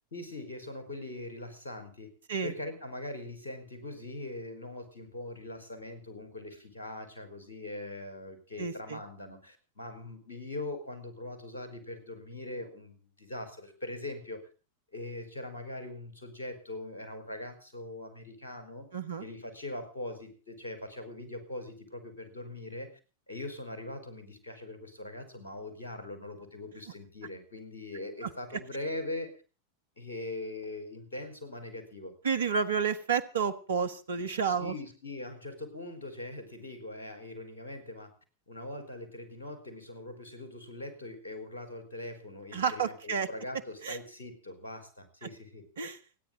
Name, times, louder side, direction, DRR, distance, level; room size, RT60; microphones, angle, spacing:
voice 1, 0.1-2.1 2.4-14.5 14.9-18.9 19.2-22.9 23.3-29.4 30.0-32.1 34.4-38.1 38.5-45.6, left 2 dB, 70° left, 9 dB, 4.8 m, -41 dB
voice 2, 8.6-9.0 18.9-19.2 28.2-28.3 32.2-34.7 42.5-43.3 43.8-44.0 45.2-45.3 45.8-46.0, right 6 dB, 65° right, 11 dB, 1.3 m, -30 dB
29.5 x 10.0 x 3.9 m, 0.34 s
figure-of-eight pair, 90°, 0 cm